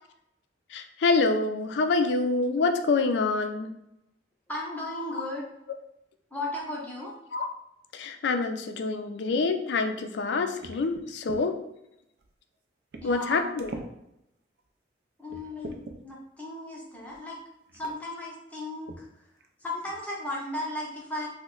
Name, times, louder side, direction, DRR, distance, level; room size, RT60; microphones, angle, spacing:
voice 1, 0.7-3.7 7.3-7.5 7.9-11.5 13.0-13.7, left 3 dB, 70° left, 6 dB, 0.3 m, -26 dB
voice 2, 4.5-5.5 6.3-7.2 13.0-13.5 15.2-17.4 17.7-19.1 19.6-21.3, left 1 dB, 10° left, -4 dB, 0.6 m, -35 dB
sound 1, 10.6-11.4 12.2-12.3 12.9-13.3 13.6-13.9 14.6-14.7 15.3-16.0 17.1-17.2 17.7-17.9 18.9-19.0 19.4-19.5 19.8-20.2, right 2 dB, 60° right, 0.4 m, -42 dB
3.0 x 2.1 x 3.7 m, 0.82 s
head